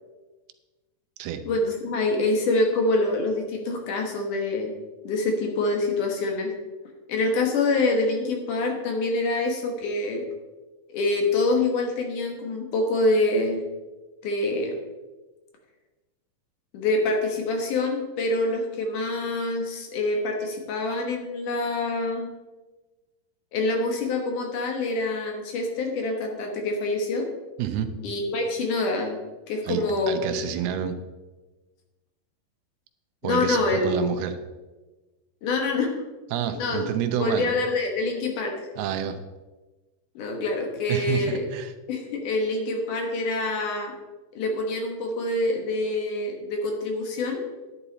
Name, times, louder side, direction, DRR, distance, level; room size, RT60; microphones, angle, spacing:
voice 1, 1.5-4.7 5.0-6.5 7.1-10.2 10.9-13.6 14.2-14.8 16.7-22.3 23.5-27.3 28.0-29.2 29.5-30.2 33.2-34.0 35.4-35.9 36.6-36.9 37.2-38.6 40.2-41.4 41.9-43.9 44.3-47.4, left 2 dB, 65° left, 2 dB, 2.7 m, -26 dB
voice 2, 27.6-27.9 29.6-31.0 33.2-34.4 36.3-37.5 38.8-39.2 40.9-41.7, right 9 dB, 90° right, 8 dB, 2.8 m, -28 dB
11.0 x 10.0 x 4.1 m, 1.2 s
omnidirectional pair, 4.4 m